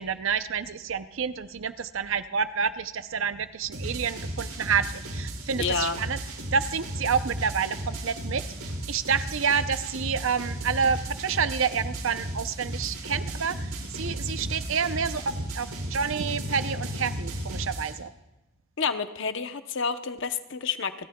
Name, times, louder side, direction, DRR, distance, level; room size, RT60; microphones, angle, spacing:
voice 1, 0.0-6.2 6.5-18.1, right 6 dB, 60° right, 12 dB, 0.6 m, -29 dB
sound 1, 3.7-17.9, right 1 dB, 85° right, 5.6 m, -35 dB
voice 2, 5.6-6.0 18.8-20.9, left 5 dB, 55° left, 9 dB, 0.8 m, -29 dB
30.0 x 13.0 x 2.3 m, 1.0 s
head